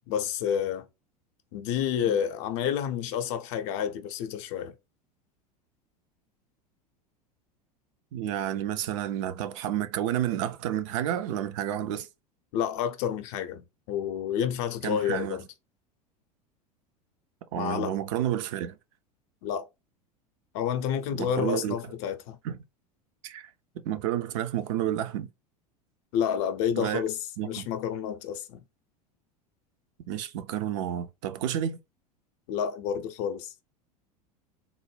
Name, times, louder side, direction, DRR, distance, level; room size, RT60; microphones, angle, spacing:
voice 1, 0.1-0.9 1.5-4.7 12.5-15.4 17.5-17.9 19.4-19.7 20.5-22.4 26.1-27.2 27.4-28.6 32.5-33.5, left 9 dB, 50° left, 0.6 m, -29 dB
voice 2, 8.1-12.1 14.8-15.4 17.5-18.8 21.1-21.9 22.4-22.6 23.2-23.5 23.8-25.3 26.8-27.0 27.4-27.7 30.1-31.8, right 11 dB, 50° right, 0.5 m, -30 dB
3.6 x 2.1 x 3.1 m
figure-of-eight pair, 80°, 20 cm